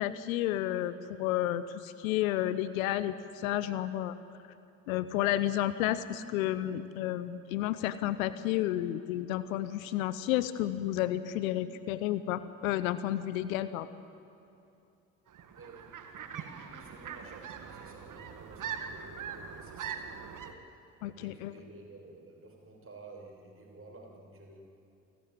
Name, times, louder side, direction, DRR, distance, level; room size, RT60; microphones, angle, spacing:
voice 1, 0.0-4.2 4.9-13.9 21.0-21.5, left 13 dB, 75° left, 15 dB, 0.9 m, -31 dB
sound 1, 15.3-20.5, right 7 dB, 50° right, 1.9 m, -42 dB
voice 2, 15.6-20.7 21.1-24.6, right 2 dB, 30° right, 0 dB, 6.2 m, -52 dB
28.5 x 13.0 x 9.5 m, 2.7 s
figure-of-eight pair, 50°, 41 cm